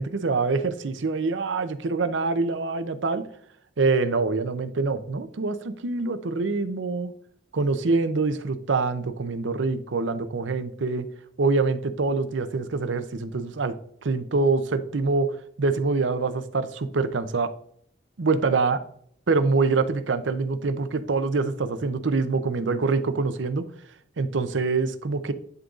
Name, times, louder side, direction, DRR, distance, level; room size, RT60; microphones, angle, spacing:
voice 1, 0.0-3.3 3.8-7.1 7.5-11.1 11.4-13.7 14.0-17.5 18.2-18.8 19.3-23.6 24.2-25.3, right 3 dB, 80° right, 11 dB, 0.6 m, -25 dB
10.5 x 3.9 x 2.5 m, 0.64 s
head